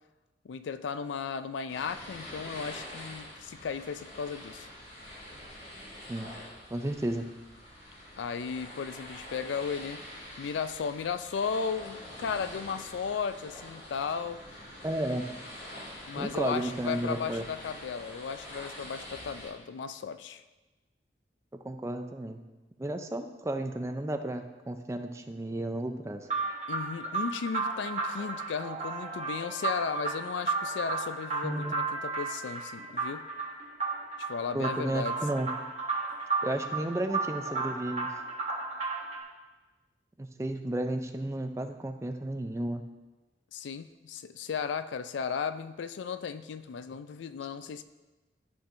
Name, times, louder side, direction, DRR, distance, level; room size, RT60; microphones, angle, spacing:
voice 1, 0.4-4.7 8.2-14.4 16.1-20.4 26.7-33.3 34.2-35.2 43.5-47.8, left 6 dB, 85° left, 12 dB, 0.4 m, -35 dB
sound 1, 1.7-19.5, left 1 dB, 55° left, 2.3 m, -46 dB
voice 2, 6.7-7.2 14.8-15.2 16.1-17.4 21.6-22.4 22.8-26.3 31.4-31.7 34.5-35.5 36.4-38.1 40.2-42.8, right 1 dB, 15° right, 6 dB, 0.4 m, -33 dB
sound 2, 26.3-39.2, right 3 dB, 35° right, 1.4 m, -33 dB
13.0 x 4.5 x 2.6 m, 1.2 s
head